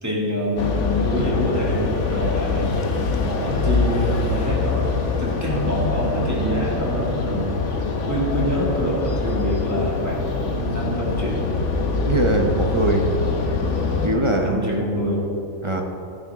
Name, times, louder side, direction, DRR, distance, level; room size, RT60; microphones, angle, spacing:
voice 1, 0.0-2.8 3.2-4.9 5.2-7.6 8.1-11.5 14.4-15.3, equal, 10° right, -4 dB, 2.2 m, -26 dB
sound 1, 0.6-14.1, left 4 dB, 65° left, 1.3 m, -24 dB
voice 2, 12.0-13.1 13.5-13.6 14.0-14.7 15.6-15.8, right 1 dB, 25° right, 2 dB, 0.7 m, -21 dB
11.5 x 10.5 x 3.7 m, 2.8 s
omnidirectional pair, 1.4 m